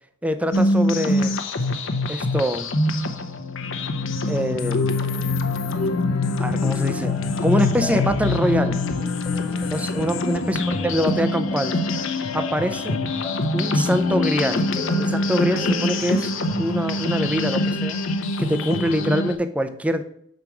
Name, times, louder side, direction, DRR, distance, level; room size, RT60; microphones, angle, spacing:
voice 1, 0.2-1.4 2.1-2.7 4.2-5.0 6.4-7.1 7.4-8.8 9.7-11.8 12.3-13.0 13.5-14.7 15.0-16.3 16.6-18.0 18.4-20.0, equal, 5° right, 10 dB, 0.4 m, -24 dB
sound 1, 0.5-19.4, left 1 dB, 60° left, 0.8 m, -26 dB
sound 2, 2.6-19.3, left 4 dB, 85° left, 0.7 m, -27 dB
sound 3, 5.2-17.5, left 1 dB, 30° left, 1.5 m, -37 dB
7.1 x 5.3 x 4.6 m, 0.70 s
head